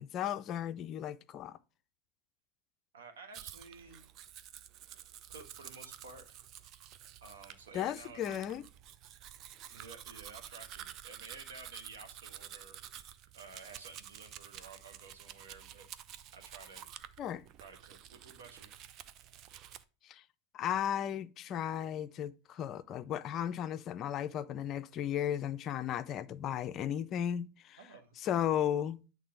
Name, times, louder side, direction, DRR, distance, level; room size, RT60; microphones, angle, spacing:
voice 1, 0.0-1.6 7.7-8.6 17.2-17.4 20.0-20.2 20.5-27.8 28.2-29.0, left 10 dB, 40° left, 0.4 m, -35 dB
voice 2, 2.9-4.1 5.3-6.4 7.2-8.5 9.7-15.9 16.3-16.9 17.6-18.9 27.8-28.3, right 4 dB, 70° right, 1.3 m, -53 dB
Domestic sounds home sounds, 3.3-19.8, right 10 dB, 40° right, 0.5 m, -50 dB
8.6 x 3.2 x 4.8 m
figure-of-eight pair, 90°, 0 cm